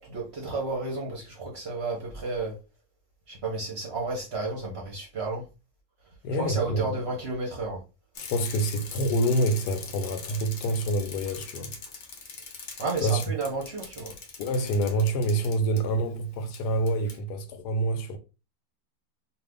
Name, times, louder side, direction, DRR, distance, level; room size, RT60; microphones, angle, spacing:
voice 1, 0.0-2.5 3.3-5.5 6.4-7.8 12.8-14.1, right 3 dB, 50° right, 0.8 m, -32 dB
voice 2, 6.2-7.0 8.2-11.8 13.0-13.2 14.4-18.2, right 1 dB, 80° left, 1.1 m, -27 dB
Bicycle, 8.1-15.8 16.5-16.6 16.9-17.2, left 5 dB, 60° left, 0.8 m, -42 dB
2.6 x 2.4 x 3.5 m
omnidirectional pair, 1.8 m